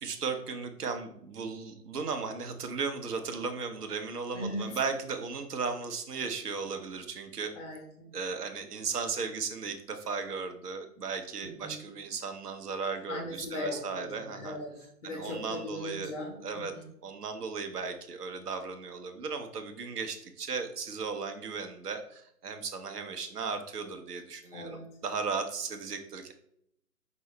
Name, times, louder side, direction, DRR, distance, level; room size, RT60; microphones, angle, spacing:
voice 1, 0.0-7.5 8.1-14.6 15.0-16.1 16.4-16.7 17.0-26.3, right 5 dB, 70° right, 7 dB, 0.9 m, -36 dB
voice 2, 4.3-4.8 7.5-8.1 11.4-11.8 13.1-14.7 15.0-16.9 24.5-24.9, left 1 dB, 45° left, -1 dB, 1.4 m, -39 dB
5.3 x 2.9 x 3.2 m, 0.72 s
figure-of-eight pair, 145°, 48 cm